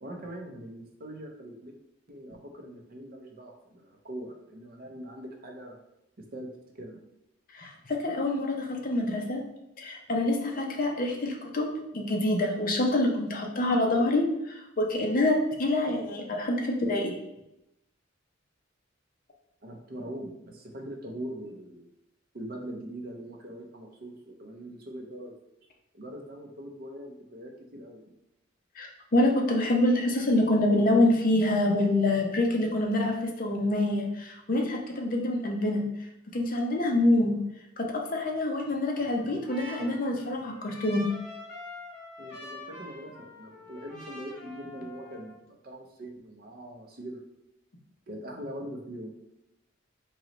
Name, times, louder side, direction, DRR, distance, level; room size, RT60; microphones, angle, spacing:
voice 1, 0.0-1.7 2.1-5.8 6.2-6.5 6.7-7.0 19.6-21.9 22.3-25.3 25.9-28.0 42.2-47.2 48.1-49.1, right 1 dB, 50° right, 2 dB, 0.6 m, -42 dB
voice 2, 7.5-9.5 9.8-17.2 28.8-35.8 36.3-37.4 37.8-41.1, left 1 dB, 45° left, 1 dB, 0.6 m, -26 dB
Trumpet, 38.6-45.4, left 2 dB, 5° left, 1.1 m, -45 dB
3.9 x 3.1 x 3.0 m, 0.88 s
head